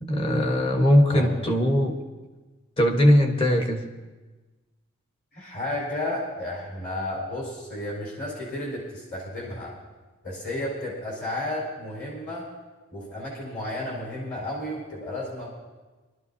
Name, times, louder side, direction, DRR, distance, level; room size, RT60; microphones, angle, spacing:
voice 1, 0.0-2.0 2.8-3.8, equal, 25° left, 3 dB, 1.2 m, -20 dB
voice 2, 5.3-9.7 10.2-12.5 12.9-15.5, left 1 dB, 40° left, -5 dB, 4.3 m, -32 dB
25.0 x 12.5 x 2.7 m, 1.2 s
head